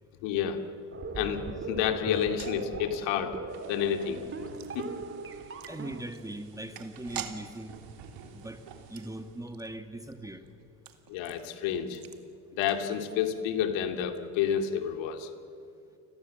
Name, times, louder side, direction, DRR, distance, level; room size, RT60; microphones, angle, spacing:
voice 1, 0.2-0.6 1.1-3.4 3.7-4.2 4.7-4.8 11.1-12.0 12.5-15.3, left 9 dB, 70° left, 7 dB, 2.6 m, -29 dB
sound 1, 0.9-6.0, right 4 dB, 25° right, 2.6 m, -39 dB
sound 2, 2.1-13.4 13.6-13.7 14.0-14.2, right 10 dB, 45° right, 2.3 m, -48 dB
sound 3, 3.5-9.4, right 6 dB, 65° right, 4.0 m, -51 dB
voice 2, 5.7-7.7 8.3-8.6 8.9-10.4, right 1 dB, 5° right, 8 dB, 1.6 m, -40 dB
30.0 x 21.0 x 7.6 m, 2.5 s
supercardioid pair, 95°, 47 cm